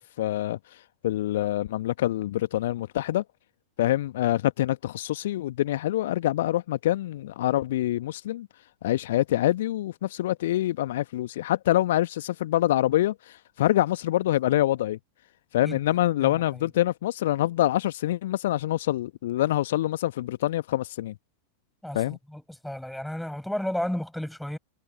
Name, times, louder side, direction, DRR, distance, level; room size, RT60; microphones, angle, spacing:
voice 1, 0.2-3.2 3.8-8.5 8.8-15.0 15.5-21.1 21.9-22.2, left 14 dB, 55° left, 1.2 m, -25 dB
voice 2, 16.2-16.7 21.8-24.6, left 1 dB, ahead, 6.0 m, -33 dB
figure-of-eight pair, 90°, 0 cm